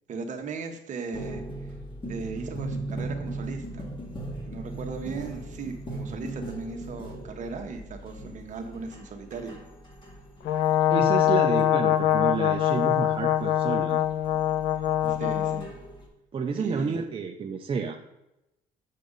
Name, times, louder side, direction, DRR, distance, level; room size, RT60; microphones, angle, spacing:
voice 1, 0.1-1.7 2.0-3.9 4.4-9.6 15.1-15.7 16.5-17.0, right 5 dB, 45° right, 4 dB, 1.2 m, -37 dB
sound 1, 1.1-16.1, right 1 dB, 30° left, 2.1 m, -39 dB
Brass instrument, 10.4-15.6, left 11 dB, 75° left, 0.6 m, -23 dB
voice 2, 10.9-14.0 16.3-18.0, right 5 dB, 30° right, 3 dB, 0.6 m, -30 dB
6.6 x 6.4 x 4.0 m, 0.90 s
cardioid pair, 110°, 17 cm